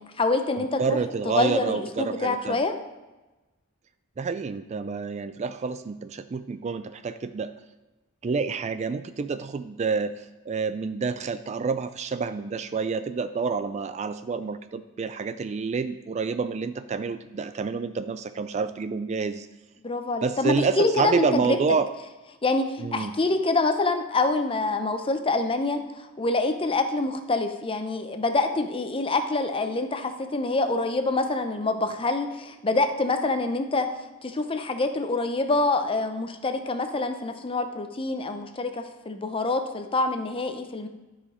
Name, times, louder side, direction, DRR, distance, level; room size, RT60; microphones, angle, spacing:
voice 1, 0.0-1.0 1.3-2.8 19.8-21.6 22.4-33.9 34.2-40.9, left 2 dB, 25° left, 8 dB, 0.6 m, -26 dB
voice 2, 0.6-2.6 4.2-7.5 8.2-19.5 20.2-21.9 22.8-23.1, right 5 dB, 30° right, 11 dB, 0.3 m, -28 dB
12.5 x 5.0 x 4.9 m, 1.1 s
head